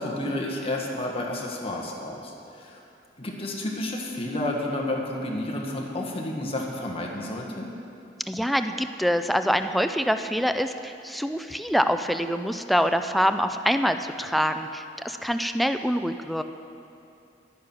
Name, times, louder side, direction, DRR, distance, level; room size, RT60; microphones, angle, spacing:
voice 1, 0.0-2.8 3.2-7.7, left 1 dB, 35° left, -1 dB, 1.5 m, -31 dB
voice 2, 8.3-16.4, equal, ahead, 8 dB, 0.3 m, -25 dB
11.0 x 9.5 x 6.1 m, 2.7 s
head